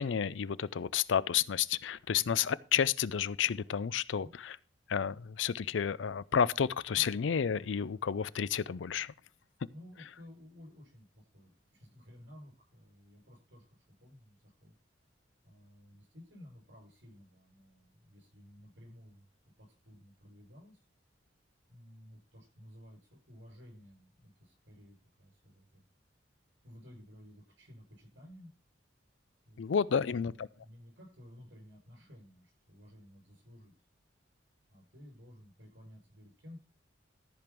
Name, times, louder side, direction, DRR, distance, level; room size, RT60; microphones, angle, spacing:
voice 1, 0.0-4.6 4.9-9.1 29.6-30.5, left 7 dB, 85° left, 0.5 m, -31 dB
voice 2, 9.3-14.8 15.4-19.2 19.6-20.8 21.7-25.8 26.6-28.5 29.5-33.7 34.7-36.6, left 1 dB, 80° right, 7.4 m, -55 dB
13.5 x 5.2 x 6.0 m
head